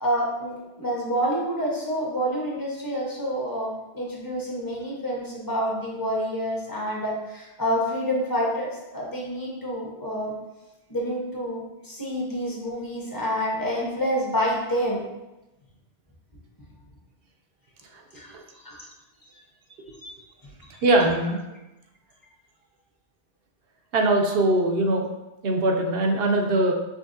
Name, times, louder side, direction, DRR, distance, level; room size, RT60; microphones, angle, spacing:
voice 1, 0.0-10.3 10.9-15.0 18.1-18.3 18.6-18.8 20.0-20.1, equal, 20° left, -4 dB, 1.0 m, -28 dB
voice 2, 20.8-21.4 23.9-25.1 25.4-26.7, right 2 dB, 65° right, 2 dB, 0.8 m, -21 dB
6.1 x 3.3 x 2.6 m, 0.99 s
omnidirectional pair, 1.1 m